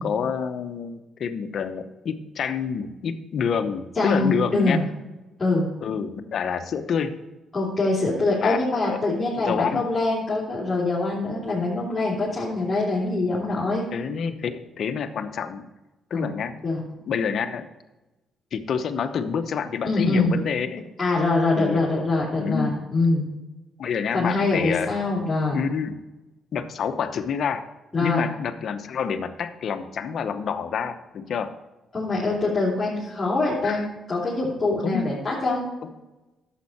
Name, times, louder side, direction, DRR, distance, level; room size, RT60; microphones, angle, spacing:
voice 1, 0.0-4.8 5.8-7.2 8.4-9.0 9.4-9.8 13.9-15.6 16.1-16.5 17.1-17.7 18.5-20.9 21.5-22.0 22.4-22.8 23.8-24.9 25.5-26.0 26.5-27.6 28.0-31.5 33.6-33.8 34.9-35.1 35.8-35.9, left 6 dB, 60° left, 9 dB, 0.8 m, -28 dB
voice 2, 3.9-4.9 5.4-5.7 7.5-13.8 16.1-16.3 16.6-16.8 19.9-20.3 21.0-23.3 24.1-25.6 27.9-28.3 31.9-33.8 34.1-35.6, left 2 dB, 20° left, -9 dB, 3.4 m, -24 dB
11.5 x 7.4 x 4.3 m, 1.1 s
cardioid pair, 90°, 0 cm